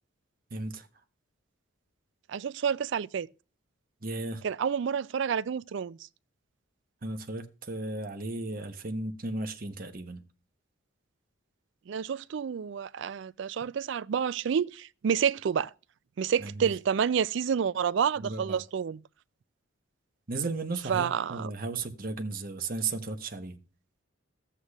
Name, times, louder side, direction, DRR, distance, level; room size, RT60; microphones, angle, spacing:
voice 1, 0.5-0.9 4.0-4.4 7.0-10.2 16.4-16.7 18.2-18.6 20.3-23.6, right 3 dB, 45° right, 1.0 m, -35 dB
voice 2, 2.3-3.3 4.4-6.0 11.9-15.7 16.2-19.0 20.9-21.5, right 7 dB, 60° right, 0.3 m, -29 dB
13.5 x 8.2 x 2.4 m
head